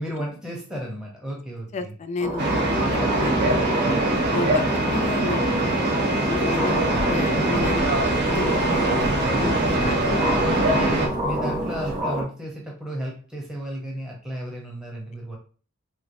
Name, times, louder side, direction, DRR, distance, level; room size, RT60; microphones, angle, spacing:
voice 1, 0.0-1.9 9.2-15.4, equal, 5° right, -2 dB, 0.7 m, -34 dB
voice 2, 1.7-3.6 4.3-9.1 9.4-10.0, left 3 dB, 35° left, 7 dB, 0.3 m, -32 dB
sound 1, 2.2-12.2, right 1 dB, 30° right, 1.1 m, -28 dB
sound 2, 2.4-11.1, right 1 dB, 55° right, 0.9 m, -23 dB
sound 3, 6.7-12.0, left 1 dB, 70° right, 1.8 m, -37 dB
3.4 x 3.1 x 2.6 m, 0.39 s
head